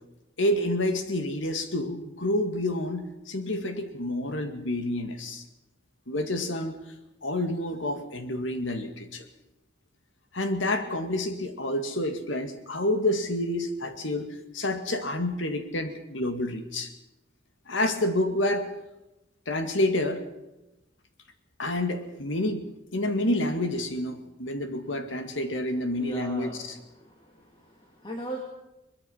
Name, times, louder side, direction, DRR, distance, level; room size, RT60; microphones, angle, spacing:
voice 1, 0.4-5.4 6.1-6.8 7.2-9.2 10.3-16.9 17.7-18.7 19.5-20.3 21.6-26.8, left 1 dB, 85° left, 7 dB, 2.2 m, -28 dB
voice 2, 26.0-26.6 26.9-28.4, right 1 dB, 25° left, 0 dB, 2.7 m, -39 dB
22.5 x 21.5 x 5.7 m, 0.96 s
head